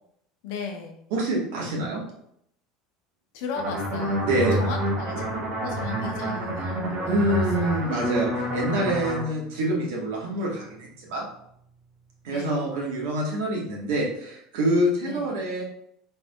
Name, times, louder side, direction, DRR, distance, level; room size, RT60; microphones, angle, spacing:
voice 1, 0.4-1.0 3.3-4.2 4.5-5.2 5.6-7.8 12.3-12.7 15.0-15.4, left 4 dB, 65° left, 3 dB, 0.8 m, -36 dB
voice 2, 1.1-2.0 4.2-4.6 7.1-11.2 12.2-15.6, right 1 dB, 65° right, -2 dB, 1.2 m, -26 dB
sound 1, 3.6-9.2, right 1 dB, 45° right, 1.4 m, -28 dB
sound 2, 8.0-11.0, right 1 dB, 10° right, 0.4 m, -35 dB
4.2 x 3.4 x 2.3 m, 0.71 s
figure-of-eight pair, 70°, 0 cm